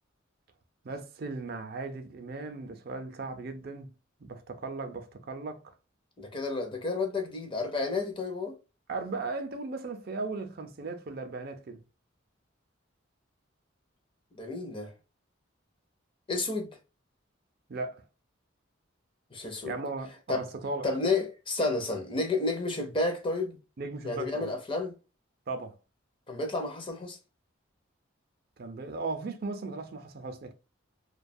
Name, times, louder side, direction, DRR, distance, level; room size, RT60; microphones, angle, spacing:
voice 1, 0.8-3.9 4.2-5.6 8.9-11.8 17.7-18.0 19.6-20.9 23.8-24.5 25.5-25.7 28.6-30.5, right 3 dB, 50° right, 0.4 m, -37 dB
voice 2, 6.2-8.5 14.3-14.9 16.3-16.8 19.3-19.7 20.3-20.4 20.8-23.6 24.0-24.9 26.3-27.2, left 3 dB, 25° left, 0.5 m, -31 dB
2.6 x 2.2 x 2.5 m
head